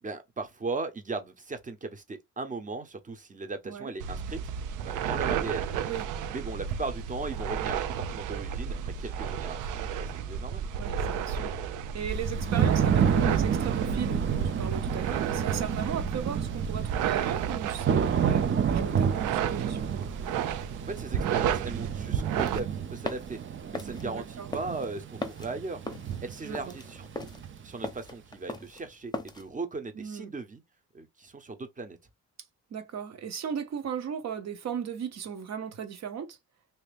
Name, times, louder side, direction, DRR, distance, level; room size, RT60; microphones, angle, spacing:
voice 1, 0.0-4.4 4.8-5.7 6.3-10.7 20.8-23.4 23.7-25.8 26.2-27.3 27.6-30.6 30.9-32.0, right 3 dB, 25° right, 0.9 m, -37 dB
sound 1, 4.0-22.6, right 8 dB, 85° right, 0.6 m, -32 dB
voice 2, 5.9-6.2 10.8-11.5 11.9-19.9 24.0-24.5 26.4-26.8 29.9-30.3 32.7-36.4, right 7 dB, 60° right, 1.1 m, -36 dB
Thunder / Rain, 12.1-27.9, right 8 dB, 40° right, 0.6 m, -30 dB
sound 2, 22.1-29.5, left 2 dB, 15° left, 0.8 m, -39 dB
2.8 x 2.7 x 3.4 m
cardioid pair, 90°, 30 cm